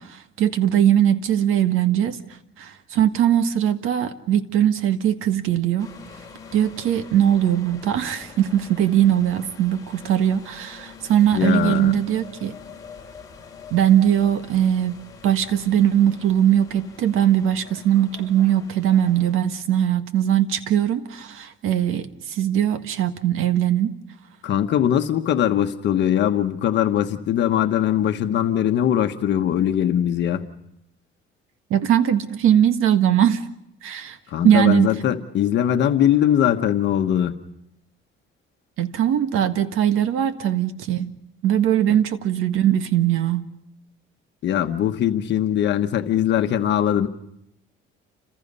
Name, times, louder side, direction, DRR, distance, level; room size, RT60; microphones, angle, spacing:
voice 1, 0.0-2.2 2.6-5.9 6.5-12.6 13.7-24.0 31.7-33.4 33.8-34.2 34.4-34.9 38.8-41.1 41.4-43.5, right 10 dB, 80° right, 9 dB, 1.6 m, -20 dB
sound 1, 5.8-19.3, left 5 dB, 15° left, 3.9 m, -44 dB
voice 2, 11.3-11.9 24.4-30.4 34.3-37.4 44.4-47.1, left 10 dB, 60° left, 6 dB, 1.3 m, -21 dB
29.5 x 26.5 x 5.5 m, 0.77 s
cardioid pair, 160°, 21 cm